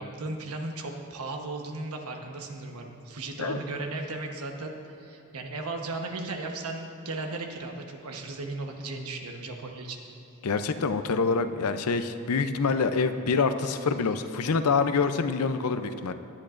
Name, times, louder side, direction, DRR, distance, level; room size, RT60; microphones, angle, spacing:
voice 1, 0.0-10.0, right 2 dB, 90° right, 3 dB, 1.1 m, -36 dB
voice 2, 10.4-16.1, left 4 dB, 90° left, 9 dB, 0.6 m, -26 dB
18.5 x 10.5 x 2.5 m, 2.9 s
head